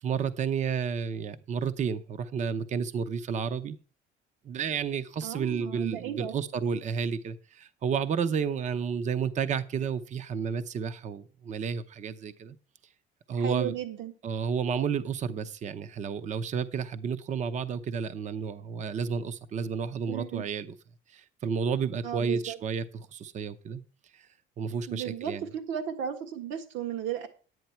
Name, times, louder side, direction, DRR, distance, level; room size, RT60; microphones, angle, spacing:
voice 1, 0.0-3.8 4.4-12.6 13.3-13.7 14.2-20.7 21.1-23.8 24.1-24.3 24.6-25.5, right 6 dB, 35° right, 0.7 m, -31 dB
voice 2, 5.2-6.3 13.4-14.1 20.1-20.5 22.0-22.6 24.9-27.3, right 9 dB, 70° right, 1.6 m, -35 dB
10.5 x 9.4 x 4.4 m
cardioid pair, 145°, 21 cm